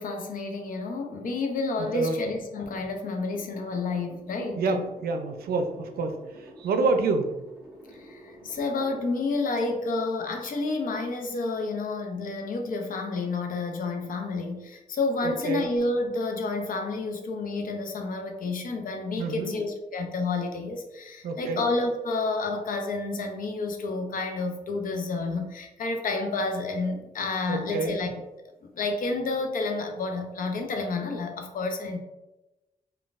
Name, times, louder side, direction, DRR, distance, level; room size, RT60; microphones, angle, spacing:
voice 1, 0.0-4.9 7.9-28.1 28.6-32.0, left 3 dB, 65° left, 4 dB, 0.5 m, -30 dB
voice 2, 1.8-2.2 4.6-7.3 15.2-15.7 19.2-19.6 21.2-21.6 27.5-28.0, right 3 dB, 90° right, 6 dB, 0.4 m, -28 dB
sound 1, 3.2-9.1 9.6-9.7, equal, 5° right, 1.4 m, -49 dB
3.9 x 2.2 x 2.4 m, 1.0 s
cardioid pair, 105°, 15 cm